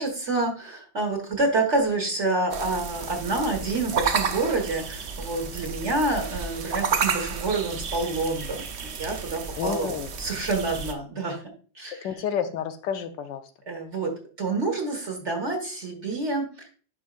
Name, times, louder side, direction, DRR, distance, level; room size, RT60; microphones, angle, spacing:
voice 1, 0.0-11.4 11.8-12.1 13.7-16.7, right 2 dB, 40° right, 2 dB, 1.8 m, -28 dB
sound 1, 2.5-10.9, right 6 dB, 55° right, 0.7 m, -31 dB
voice 2, 9.6-10.1 11.9-13.4, left 7 dB, 80° left, 8 dB, 1.3 m, -30 dB
11.0 x 4.9 x 2.5 m, 0.40 s
omnidirectional pair, 2.0 m